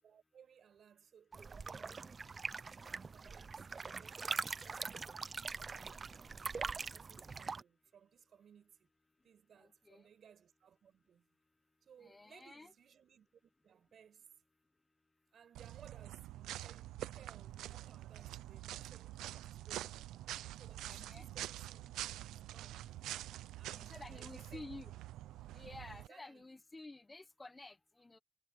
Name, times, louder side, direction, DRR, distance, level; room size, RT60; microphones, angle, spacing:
voice 1, 0.0-2.3 3.1-5.3 6.3-8.9 9.2-11.3 11.8-14.3 15.3-20.1 20.6-21.8 22.2-23.0 23.6-25.0 25.9-26.5, right 8 dB, 60° right, 7.8 m, -63 dB
sound 1, 1.3-7.6, right 4 dB, 35° right, 0.8 m, -43 dB
voice 2, 9.6-10.0 12.0-12.7 20.8-21.3 23.7-24.9 25.5-28.2, left 2 dB, 20° left, 0.9 m, -52 dB
sound 2, 15.5-26.1, right 14 dB, 90° right, 0.8 m, -46 dB
cardioid pair, 90°, 0 cm